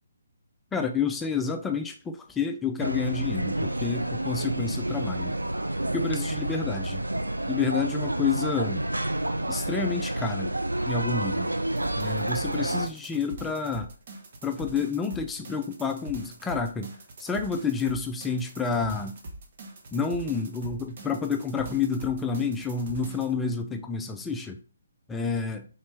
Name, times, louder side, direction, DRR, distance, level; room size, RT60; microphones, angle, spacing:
voice 1, 0.7-5.3 5.9-7.0 7.5-8.8 9.5-10.5 10.9-11.5 12.0-13.9 14.4-16.9 17.2-19.1 19.9-24.6 25.1-25.7, left 5 dB, 10° left, 5 dB, 0.3 m, -29 dB
sound 1, 2.8-12.9, right 1 dB, 80° right, 0.4 m, -29 dB
sound 2, 11.7-23.3, right 2 dB, 45° right, 0.9 m, -43 dB
3.8 x 3.2 x 3.2 m, 0.37 s
figure-of-eight pair, 135°, 0 cm